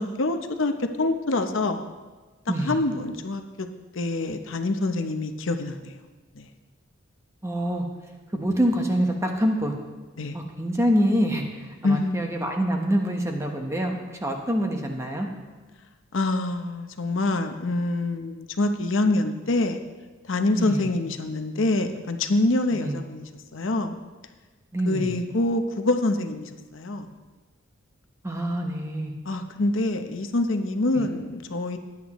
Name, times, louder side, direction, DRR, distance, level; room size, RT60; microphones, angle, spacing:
voice 1, 0.0-1.8 2.6-3.7 3.9-6.0 6.3-6.5 10.2-10.4 11.8-12.2 16.1-19.8 20.3-24.0 24.8-27.1 29.2-31.8, left 2 dB, 65° left, 7 dB, 0.8 m, -26 dB
voice 2, 7.4-7.9 8.3-9.8 10.3-15.3 20.5-20.9 22.7-23.0 24.7-25.1 28.2-29.1, equal, 15° right, 2 dB, 1.1 m, -25 dB
17.0 x 9.8 x 3.1 m, 1.3 s
head